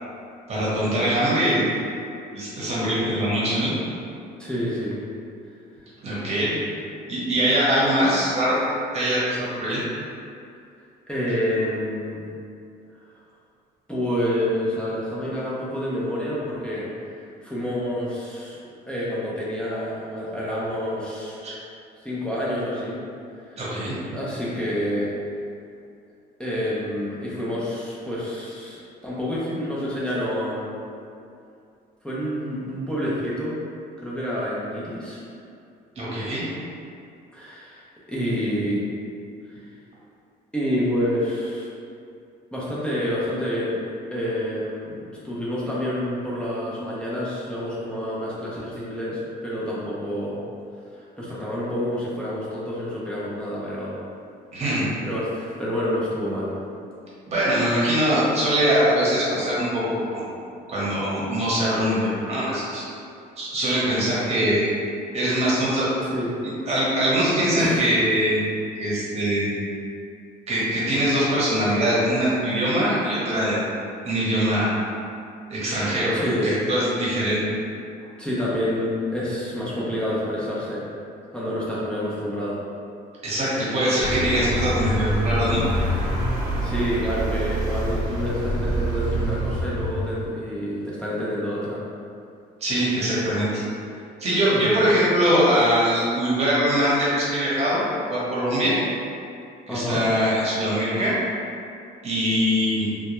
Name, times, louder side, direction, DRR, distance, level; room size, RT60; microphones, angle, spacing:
voice 1, 0.5-1.6 2.3-3.7 6.0-6.5 7.1-8.5 8.9-9.8 21.4-21.5 23.6-23.9 36.0-36.4 54.5-54.9 57.3-59.8 60.1-60.2 60.7-62.8 63.4-64.7 65.1-65.9 66.7-68.4 68.8-69.5 70.5-73.6 74.0-74.7 75.5-77.4 83.2-85.6 92.6-93.6 94.2-97.8 98.1-98.8 99.7-101.1 102.0-102.9, equal, 40° right, -7 dB, 0.9 m, -22 dB
voice 2, 4.4-5.0 11.1-12.3 13.9-18.6 18.9-21.4 22.0-23.0 23.4-23.6 24.1-25.1 26.4-30.8 32.0-33.6 34.0-35.2 37.3-38.8 39.5-39.6 40.5-41.7 42.5-43.7 44.1-50.4 51.2-54.0 55.0-56.5 66.0-66.4 67.6-67.8 76.1-76.6 78.2-80.8 81.3-82.6 86.6-91.8 94.5-94.8 99.7-100.0, equal, 5° left, -9 dB, 0.5 m, -28 dB
Vehicle, 84.0-90.4, right 1 dB, 75° right, 0.7 m, -26 dB
2.2 x 2.1 x 2.9 m, 2.5 s
cardioid pair, 110°, 17 cm